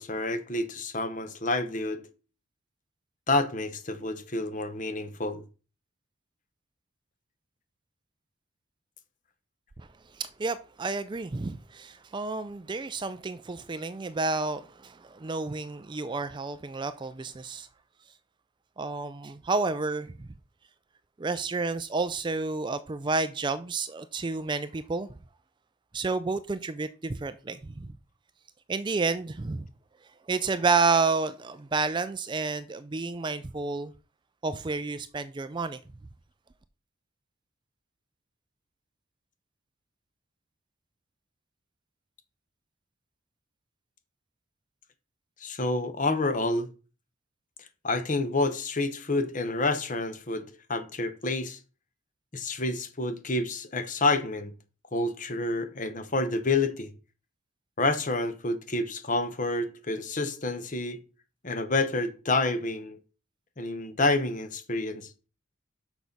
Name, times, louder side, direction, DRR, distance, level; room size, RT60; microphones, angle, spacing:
voice 1, 0.0-2.0 3.3-5.4 45.4-46.7 47.8-51.6 52.3-54.5 54.9-56.9 57.8-61.0 61.4-63.0 63.6-65.1, left 2 dB, 40° left, 1.0 m, -28 dB
voice 2, 10.1-17.7 18.8-20.3 21.2-25.1 25.9-27.9 28.7-29.7 30.3-33.9 34.4-35.8, right 4 dB, 20° right, 0.4 m, -30 dB
6.3 x 5.9 x 5.3 m
head